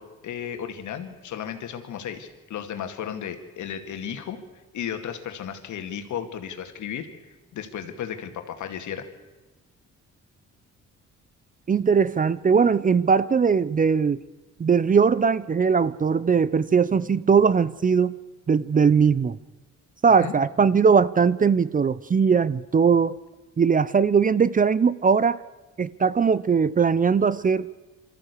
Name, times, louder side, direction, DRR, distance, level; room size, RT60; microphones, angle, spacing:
voice 1, 0.0-4.4 4.7-7.1 7.5-9.1 20.1-20.4, left 9 dB, 75° left, 7 dB, 2.2 m, -34 dB
voice 2, 11.7-14.2 14.6-18.2 18.5-19.4 20.0-23.2 23.6-25.4 25.8-27.7, right 6 dB, 30° right, 18 dB, 0.6 m, -20 dB
23.5 x 14.0 x 8.3 m, 1.2 s
cardioid pair, 90°, 30 cm